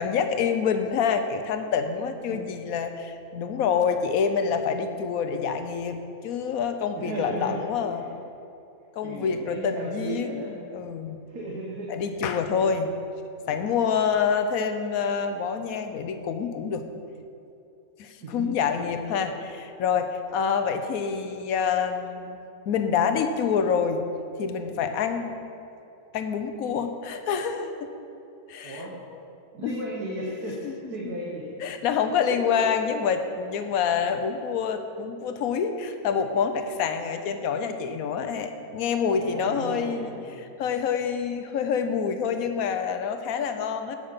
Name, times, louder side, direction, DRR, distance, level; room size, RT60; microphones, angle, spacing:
voice 1, 0.0-6.0 6.2-8.0 9.0-11.2 11.9-12.9 13.5-16.8 18.0-22.4 22.7-24.0 24.4-25.3 26.1-27.9 28.5-28.8 29.6-29.8 30.6-30.7 31.6-44.0, left 6 dB, 70° left, 8 dB, 1.1 m, -27 dB
voice 2, 2.3-2.6 6.9-8.1 9.0-10.6 11.3-12.0 18.0-18.5 18.8-19.3 20.7-20.9 28.6-28.9 29.5-31.7 32.3-32.7 39.1-40.3, right 1 dB, 80° right, -3 dB, 1.7 m, -36 dB
8.4 x 8.1 x 5.6 m, 2.7 s
omnidirectional pair, 1.6 m